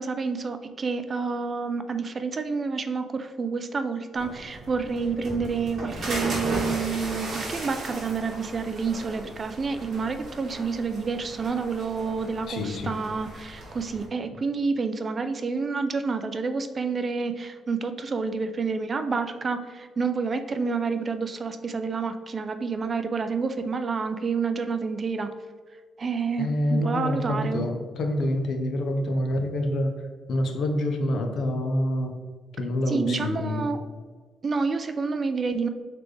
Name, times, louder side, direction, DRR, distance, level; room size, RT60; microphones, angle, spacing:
voice 1, 0.0-25.3 26.0-27.6 32.9-33.8 34.4-35.7, right 4 dB, 40° right, 8 dB, 0.3 m, -29 dB
sound 1, 4.1-14.0, right 1 dB, 60° right, 1.5 m, -36 dB
voice 2, 12.5-13.0 26.4-30.0 30.3-32.2 32.6-33.8, left 1 dB, 65° left, 4 dB, 0.6 m, -27 dB
4.1 x 3.2 x 3.2 m, 1.5 s
cardioid pair, 90°, 0 cm